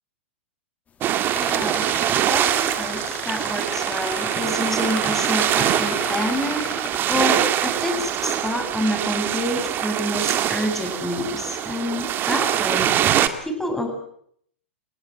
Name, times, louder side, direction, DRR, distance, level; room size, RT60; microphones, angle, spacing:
sound 1, 1.0-13.3, right 11 dB, 30° right, 2.2 m, -23 dB
sound 2, 1.3-7.5 8.5-8.6 9.1-9.6 10.1-10.4, left 7 dB, 20° left, 1.8 m, -35 dB
voice 1, 1.4-6.8 7.1-12.9 13.4-13.9, left 1 dB, 5° left, 4 dB, 7.9 m, -28 dB
29.0 x 17.0 x 8.1 m, 0.67 s
hypercardioid pair, 110°, 7 cm